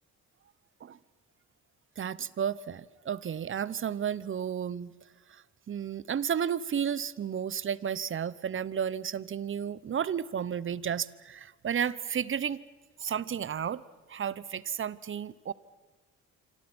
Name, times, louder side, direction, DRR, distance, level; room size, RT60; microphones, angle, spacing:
voice 1, 2.0-4.9 5.3-12.6 13.0-13.8 14.1-15.5, right 8 dB, 40° right, 19 dB, 1.0 m, -32 dB
27.0 x 26.0 x 6.3 m, 1.3 s
cardioid pair, 90°, 30 cm